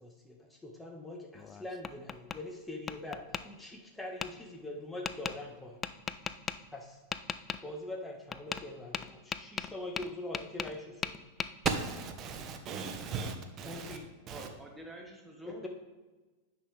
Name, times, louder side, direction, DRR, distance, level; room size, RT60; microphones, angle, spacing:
voice 1, 0.0-5.8 6.7-7.0 7.6-11.2 13.6-14.1 15.5-15.7, left 2 dB, 5° left, 1.6 m, -43 dB
Tap, 1.4-2.4 2.9-3.4 4.2-4.3 5.1-5.4 5.8-6.6 7.1-7.6 8.3-8.7 8.9-10.8 11.0-11.8, left 6 dB, 25° left, 0.4 m, -37 dB
voice 2, 11.6-14.0 14.3-14.5, right 6 dB, 35° right, 1.2 m, -36 dB
voice 3, 14.3-15.7, right 1 dB, 10° right, 1.5 m, -48 dB
9.8 x 5.7 x 3.4 m
hypercardioid pair, 100°, 0 cm